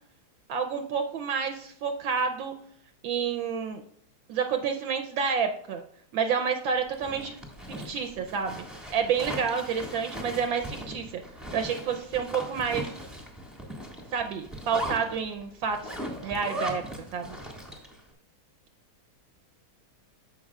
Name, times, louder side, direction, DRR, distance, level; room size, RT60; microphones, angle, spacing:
voice 1, 0.5-2.5 3.0-3.8 4.3-5.8 6.1-7.4 7.8-8.6 8.9-11.2 11.5-12.9 14.1-16.0 16.2-16.8 17.1-17.4, right 6 dB, 75° right, 5 dB, 1.3 m, -29 dB
Zipper (clothing), 6.8-18.0, equal, ahead, 1.3 m, -39 dB
14.0 x 5.4 x 2.3 m, 0.68 s
omnidirectional pair, 2.3 m